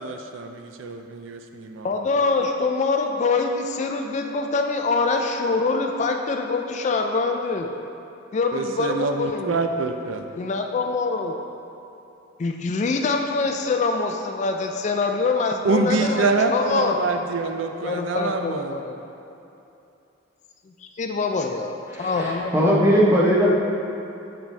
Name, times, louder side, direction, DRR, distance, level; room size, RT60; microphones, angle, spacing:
voice 1, 0.0-1.9 8.5-10.3 15.6-18.8, right 3 dB, 75° right, 6 dB, 0.4 m, -25 dB
voice 2, 1.8-7.7 8.3-9.6 10.4-11.4 12.4-17.0 17.8-18.9 20.7-22.8, left 4 dB, 35° left, 4 dB, 0.3 m, -24 dB
voice 3, 21.9-23.5, equal, 15° right, -5 dB, 0.9 m, -19 dB
6.8 x 6.0 x 3.2 m, 2.8 s
head